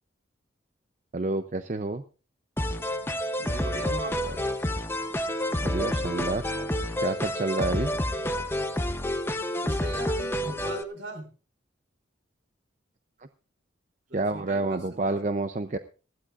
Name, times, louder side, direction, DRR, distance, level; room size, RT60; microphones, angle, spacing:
voice 1, 1.1-2.0 5.6-6.4 7.0-7.9 14.1-15.8, right 2 dB, 40° right, 9 dB, 0.6 m, -28 dB
sound 1, 2.6-10.8, left 1 dB, 10° left, 0.7 m, -29 dB
voice 2, 3.4-4.4 9.6-11.3 14.1-15.2, right 2 dB, 65° right, 5 dB, 5.0 m, -39 dB
20.0 x 15.0 x 2.5 m, 0.35 s
head